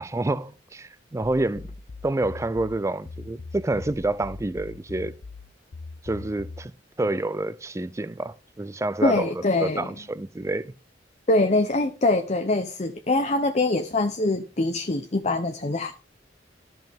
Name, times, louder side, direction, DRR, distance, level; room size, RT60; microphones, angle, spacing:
voice 1, 0.0-1.7 2.0-5.1 6.0-9.3 9.6-10.7, right 2 dB, 15° right, 0.3 m, -28 dB
sound 1, 1.5-6.7, left 3 dB, 80° left, 0.7 m, -41 dB
voice 2, 9.0-9.9 11.3-15.9, left 2 dB, 35° left, 0.7 m, -23 dB
13.5 x 5.5 x 3.5 m
head